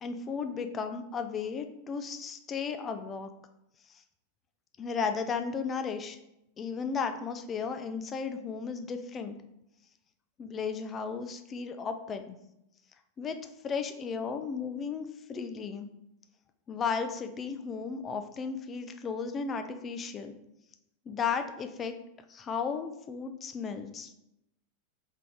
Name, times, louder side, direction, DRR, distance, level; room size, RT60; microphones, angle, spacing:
voice 1, 0.0-3.3 4.8-6.2 6.6-9.4 10.4-12.4 13.2-13.4 13.6-15.9 16.7-20.3 21.1-21.9 22.3-24.1, left 5 dB, 25° left, 7 dB, 0.4 m, -34 dB
3.7 x 3.4 x 3.7 m, 0.84 s
figure-of-eight pair, 90°, 0 cm